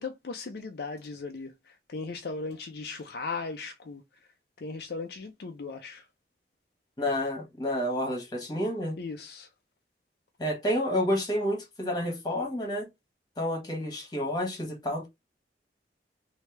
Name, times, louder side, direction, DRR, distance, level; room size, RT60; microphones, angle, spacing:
voice 1, 0.0-4.0 4.6-6.0 9.0-9.5, left 4 dB, 60° left, 0.5 m, -37 dB
voice 2, 7.0-9.0 10.4-12.9 13.4-15.1, equal, 25° left, 1.4 m, -29 dB
3.2 x 2.7 x 3.2 m
head